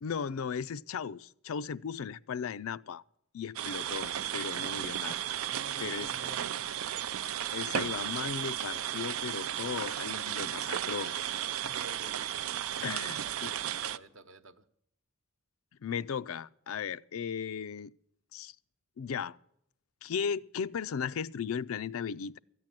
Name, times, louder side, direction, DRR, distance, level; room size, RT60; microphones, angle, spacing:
voice 1, 0.0-3.0 3.3-5.1 5.8-6.1 7.5-11.1 12.8-13.5 15.8-17.9 18.3-18.6 19.0-19.4 20.0-22.4, left 7 dB, 80° left, 0.4 m, -36 dB
sound 1, 3.6-14.0, right 10 dB, 85° right, 0.5 m, -34 dB
voice 2, 4.4-4.8 5.4-6.7 10.6-10.8 11.6-12.2 12.8-14.6, right 2 dB, 60° right, 0.9 m, -50 dB
14.0 x 9.2 x 7.4 m
head